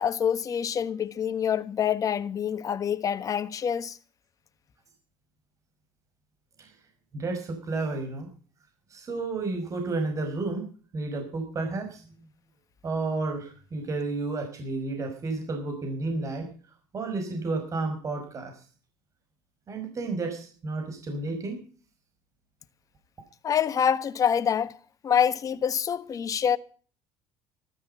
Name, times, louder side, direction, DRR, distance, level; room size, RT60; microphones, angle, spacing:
voice 1, 0.0-4.0 23.4-24.7 25.0-26.6, left 8 dB, 40° left, 1.4 m, -26 dB
voice 2, 7.1-8.3 8.9-10.7 10.9-12.1 12.8-16.5 16.9-18.6 19.7-21.6, right 3 dB, 35° right, 5.7 m, -31 dB
14.0 x 13.0 x 5.6 m
supercardioid pair, 105°, 9 cm